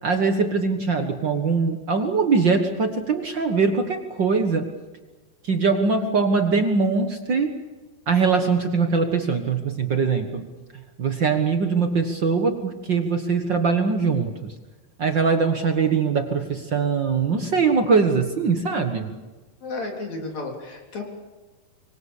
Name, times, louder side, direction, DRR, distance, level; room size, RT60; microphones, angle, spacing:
voice 1, 0.0-4.7 5.4-7.5 8.1-10.4 11.0-14.5 15.0-19.1, right 4 dB, 55° right, 6 dB, 1.2 m, -22 dB
voice 2, 19.6-21.0, left 3 dB, 50° left, 2 dB, 4.6 m, -32 dB
26.0 x 24.5 x 7.2 m, 1.2 s
omnidirectional pair, 4.3 m